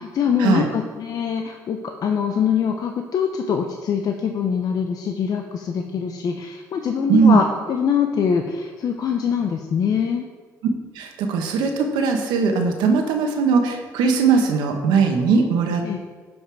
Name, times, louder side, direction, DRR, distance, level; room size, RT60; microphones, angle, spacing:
voice 1, 0.0-10.2 15.8-16.0, left 7 dB, 55° left, 3 dB, 0.8 m, -23 dB
voice 2, 10.9-15.8, right 5 dB, 90° right, 3 dB, 1.4 m, -19 dB
12.0 x 5.3 x 4.9 m, 1.4 s
cardioid pair, 90°, 7 cm